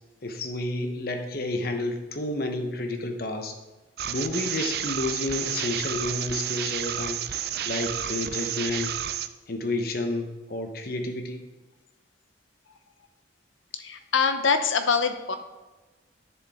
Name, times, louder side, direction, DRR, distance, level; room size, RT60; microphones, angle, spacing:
voice 1, 0.2-3.5 4.1-7.2 7.7-8.9 9.5-11.4, left 2 dB, 50° left, 5 dB, 1.0 m, -30 dB
sound 1, 4.0-9.3, right 10 dB, 55° right, 0.4 m, -31 dB
voice 2, 13.7-15.4, left 5 dB, 85° left, 8 dB, 0.8 m, -24 dB
10.0 x 6.7 x 3.6 m, 1.2 s
head